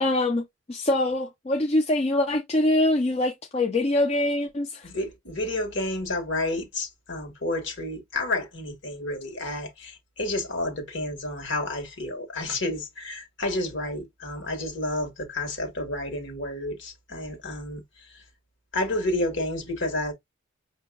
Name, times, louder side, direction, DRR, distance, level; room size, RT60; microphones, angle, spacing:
voice 1, 0.0-4.9, left 1 dB, 30° left, 0.5 m, -24 dB
voice 2, 4.8-18.2 18.7-20.1, left 2 dB, 65° left, 1.5 m, -30 dB
5.9 x 2.8 x 2.3 m
head